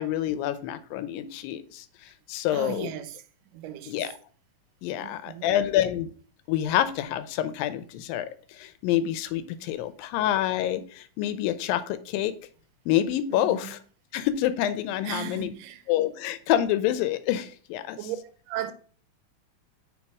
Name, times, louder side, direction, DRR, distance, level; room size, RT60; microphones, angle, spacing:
voice 1, 0.0-2.9 3.9-4.2 4.8-6.1 6.5-12.3 12.9-13.8 14.1-15.5 15.9-18.0, left 12 dB, 90° left, 2.3 m, -27 dB
voice 2, 2.5-3.2 3.5-4.2 5.0-5.7 13.3-13.7 15.0-15.8 18.0-18.2 18.5-18.7, right 10 dB, 80° right, 2.1 m, -36 dB
4.7 x 4.2 x 4.7 m
omnidirectional pair, 4.0 m